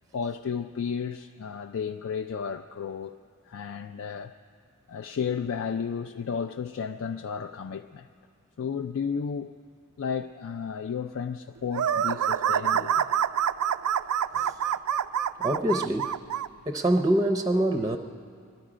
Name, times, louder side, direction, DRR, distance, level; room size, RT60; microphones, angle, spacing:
voice 1, 0.1-3.2 3.5-4.3 4.9-8.1 8.6-9.5 10.0-13.0, left 6 dB, 60° left, 6 dB, 0.4 m, -33 dB
sound 1, 11.7-16.5, right 9 dB, 75° right, 0.3 m, -26 dB
voice 2, 15.4-16.2 16.7-18.0, right 1 dB, 15° right, 6 dB, 0.5 m, -24 dB
21.5 x 13.0 x 4.9 m, 2.2 s
head